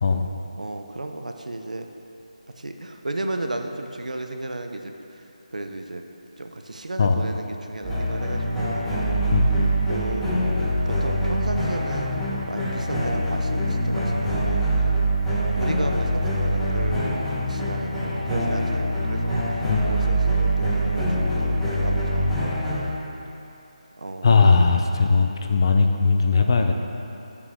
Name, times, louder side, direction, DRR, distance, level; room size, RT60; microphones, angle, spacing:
voice 1, 0.6-1.9 2.6-5.2 5.5-6.0 6.4-9.2 9.9-10.3 10.9-14.9 15.3-17.2 17.5-22.9 24.0-24.4, right 2 dB, 90° right, 5 dB, 0.7 m, -34 dB
sound 1, 7.8-22.9, right 1 dB, 5° left, 1.0 m, -24 dB
voice 2, 9.3-9.7 19.7-19.8 24.2-26.7, left 4 dB, 35° left, 5 dB, 0.5 m, -19 dB
8.9 x 6.9 x 3.5 m, 2.8 s
figure-of-eight pair, 165°, 4 cm